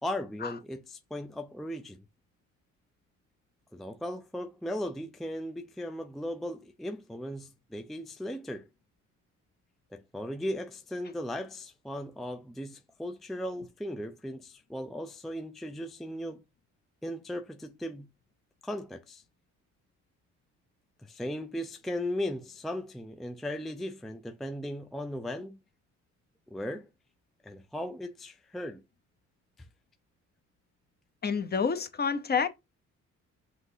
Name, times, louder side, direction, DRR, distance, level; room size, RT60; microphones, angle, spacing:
voice 1, 0.0-2.0 3.7-8.7 9.9-16.4 17.0-18.1 18.6-19.2 21.0-25.6 26.5-26.9 27.4-28.8 29.6-29.7, left 1 dB, ahead, 0.4 m, -37 dB
voice 2, 31.2-32.5, left 6 dB, 35° left, 0.7 m, -28 dB
5.9 x 2.6 x 2.7 m
cardioid pair, 90°, 30 cm